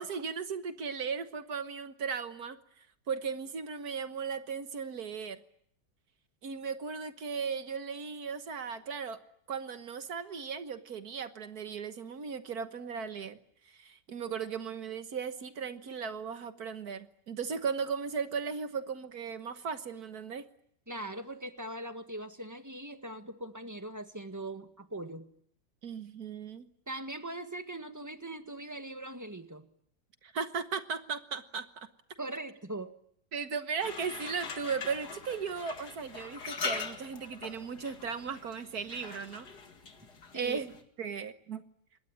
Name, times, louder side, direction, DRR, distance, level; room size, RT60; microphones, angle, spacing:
voice 1, 0.0-2.6 3.1-5.4 6.4-9.2 9.5-13.4 13.7-20.4 25.8-26.7 30.2-31.9 33.3-39.5 40.3-40.7 41.0-41.6, right 6 dB, 65° right, 10 dB, 1.8 m, -37 dB
voice 2, 20.9-25.3 26.9-29.7 32.2-33.0 40.3-40.6, right 1 dB, 10° right, 8 dB, 1.6 m, -41 dB
sound 1, 33.8-40.8, left 4 dB, 75° left, 2.7 m, -42 dB
26.0 x 20.5 x 9.9 m, 0.69 s
omnidirectional pair, 1.8 m